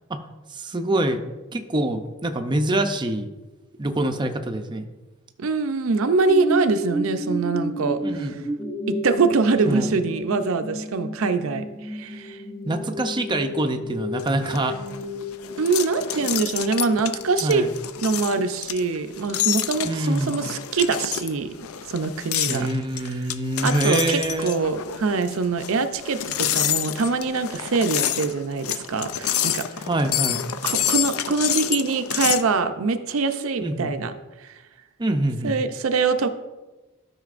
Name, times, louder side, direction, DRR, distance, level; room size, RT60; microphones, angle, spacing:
voice 1, 0.5-1.2 1.5-3.3 3.8-4.9 8.0-8.3 9.7-9.9 12.6-14.8 17.4-17.7 19.8-20.4 22.5-24.6 29.8-30.4 33.6-33.9 35.0-35.5, right 1 dB, 20° right, 5 dB, 0.5 m, -25 dB
voice 2, 5.4-8.3 8.9-12.4 15.6-17.6 18.0-21.5 21.9-22.7 23.6-29.6 30.6-34.1 34.4-34.5 35.4-36.3, right 4 dB, 70° right, 9 dB, 0.5 m, -24 dB
sound 1, 6.2-19.8 20.3-20.4, equal, 20° left, 2.5 m, -32 dB
sound 2, 14.2-32.5, left 11 dB, 85° left, 0.5 m, -28 dB
12.5 x 5.7 x 2.5 m, 1.1 s
head